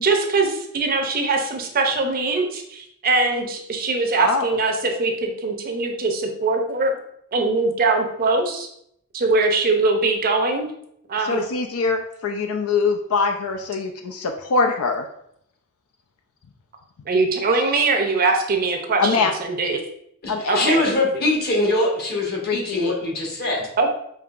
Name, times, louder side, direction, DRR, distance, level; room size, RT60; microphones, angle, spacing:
voice 1, 0.0-7.0 7.3-8.7 9.1-10.7 11.1-11.4 17.1-19.8 20.5-20.8 23.8-23.9, right 3 dB, 40° right, 3 dB, 0.6 m, -22 dB
voice 2, 11.2-15.1 19.0-19.3 20.3-20.7 22.5-22.9, left 4 dB, 70° left, 4 dB, 0.4 m, -23 dB
voice 3, 20.2-23.6, left 2 dB, 45° left, -2 dB, 1.2 m, -22 dB
5.3 x 2.8 x 2.4 m, 0.71 s
head